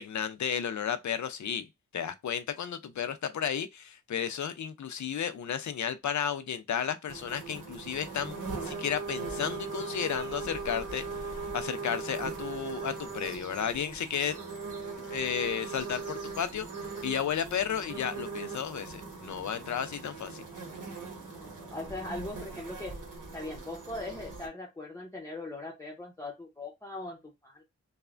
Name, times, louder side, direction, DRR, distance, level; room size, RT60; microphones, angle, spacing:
voice 1, 0.0-1.6 1.9-11.0 11.5-14.4 15.0-16.7 17.0-20.4, left 8 dB, 65° left, 0.5 m, -33 dB
sound 1, 7.1-24.5, right 4 dB, 75° right, 1.1 m, -40 dB
voice 2, 21.4-22.9 23.3-27.2 27.4-27.6, left 2 dB, 10° left, 0.7 m, -40 dB
3.2 x 2.1 x 2.4 m
wide cardioid pair, 115°, 31 cm